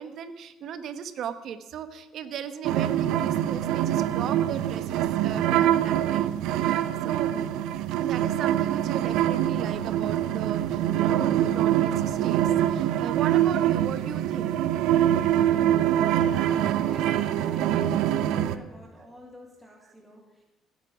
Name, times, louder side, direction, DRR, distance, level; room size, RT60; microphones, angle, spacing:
voice 1, 0.0-7.3 8.0-14.5, right 8 dB, 60° right, 11 dB, 1.1 m, -37 dB
sound 1, 2.6-18.6, right 11 dB, 85° right, 0.7 m, -24 dB
voice 2, 16.2-20.4, right 1 dB, 5° right, 0 dB, 1.9 m, -45 dB
16.5 x 8.3 x 6.2 m, 0.98 s
cardioid pair, 120°, 0 cm